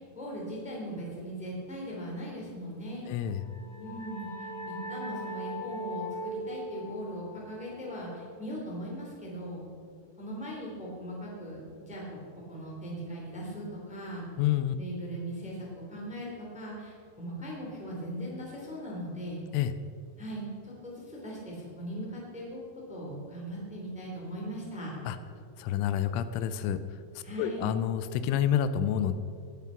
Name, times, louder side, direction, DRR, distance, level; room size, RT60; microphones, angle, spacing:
voice 1, 0.0-3.1 3.8-9.6 10.2-14.2 14.7-19.4 20.2-22.6 22.9-25.0 27.2-27.7, equal, ahead, -4 dB, 2.0 m, -39 dB
voice 2, 3.1-3.4 14.4-14.8 19.5-19.7 25.1-25.2 25.6-26.8 27.2-29.2, left 10 dB, 85° left, 12 dB, 3.0 m, -28 dB
sound 1, 3.2-8.6, equal, 35° left, 3.4 m, -40 dB
19.0 x 7.3 x 5.8 m, 2.3 s
omnidirectional pair, 5.5 m